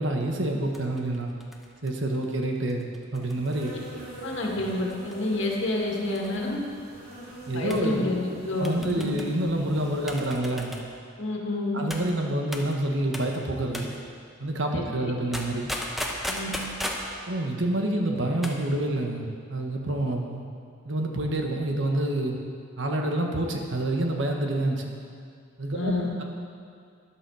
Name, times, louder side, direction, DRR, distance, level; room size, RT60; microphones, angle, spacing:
voice 1, 0.0-1.3 1.8-3.7 7.5-8.0 8.6-10.7 11.7-13.9 14.4-15.7 17.3-20.5 20.8-22.4 22.8-24.9 25.6-25.9, right 1 dB, 65° right, 2 dB, 1.5 m, -27 dB
sound 1, 0.7-4.1 4.9-5.4 5.6-5.7 6.2-6.5 7.7-7.9 8.6-9.3 10.1-10.9 11.9-12.1 12.5-12.7 13.1-13.4 13.7-14.0 15.3-17.1 18.2-18.6 18.9-19.0, equal, ahead, 1.1 m, -36 dB
Insect, 3.2-10.4, right 1 dB, 50° right, 3.1 m, -44 dB
voice 2, 4.2-6.6 7.5-9.2 11.2-11.8 14.7-15.1 16.3-16.5 25.7-26.1, left 2 dB, 65° left, -1 dB, 2.1 m, -29 dB
13.0 x 11.0 x 4.9 m, 2.3 s
head